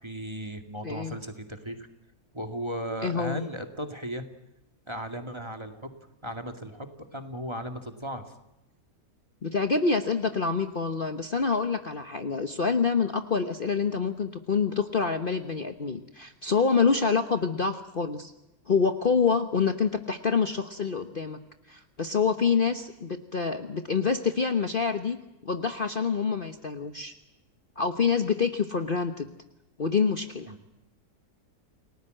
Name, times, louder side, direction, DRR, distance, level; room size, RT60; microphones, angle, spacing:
voice 1, 0.0-1.8 2.3-4.2 4.9-5.9 6.2-8.2 30.5-30.6, equal, 15° right, 6 dB, 2.2 m, -36 dB
voice 2, 0.8-1.2 3.0-3.5 9.4-18.3 18.7-21.4 21.7-25.2 25.4-27.1 27.8-29.3 29.8-30.5, left 5 dB, 35° left, 8 dB, 1.2 m, -26 dB
29.5 x 19.0 x 7.8 m, 0.95 s
omnidirectional pair, 1.7 m